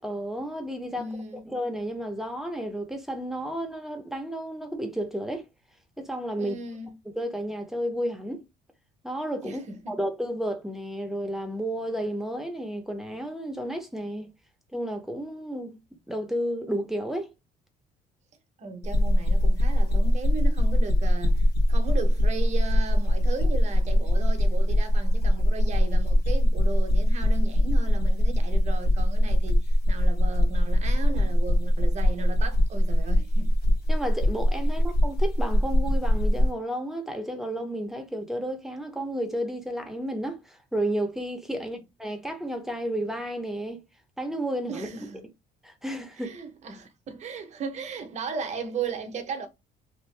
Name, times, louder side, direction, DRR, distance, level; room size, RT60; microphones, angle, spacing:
voice 1, 0.0-1.0 1.4-5.5 6.0-6.6 7.1-8.4 9.0-9.6 9.9-14.3 14.7-15.8 16.1-17.3 33.9-43.8 44.2-44.9 45.6-46.4, equal, ahead, 0.7 m, -32 dB
voice 2, 1.0-1.5 6.4-6.9 9.4-10.0 18.6-33.6 41.6-41.8 44.7-45.2 46.2-49.5, right 4 dB, 45° right, 0.8 m, -36 dB
sound 1, 18.8-36.5, equal, 65° left, 1.2 m, -22 dB
2.8 x 2.5 x 3.2 m
cardioid pair, 110°, 17 cm